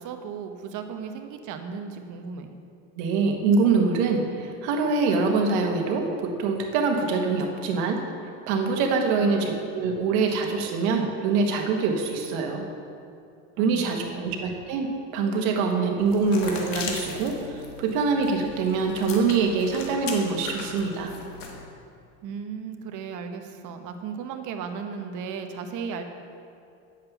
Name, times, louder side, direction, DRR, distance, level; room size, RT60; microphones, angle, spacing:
voice 1, 0.0-2.5 9.2-9.7 13.6-13.8 14.1-14.4 22.2-26.0, right 6 dB, 55° right, 6 dB, 1.0 m, -36 dB
voice 2, 3.0-8.0 8.5-12.6 13.6-21.1, right 4 dB, 75° right, 3 dB, 1.4 m, -24 dB
sound 1, 16.0-21.6, left 4 dB, 85° left, 1.6 m, -38 dB
8.8 x 7.5 x 5.9 m, 2.5 s
supercardioid pair, 105°, 37 cm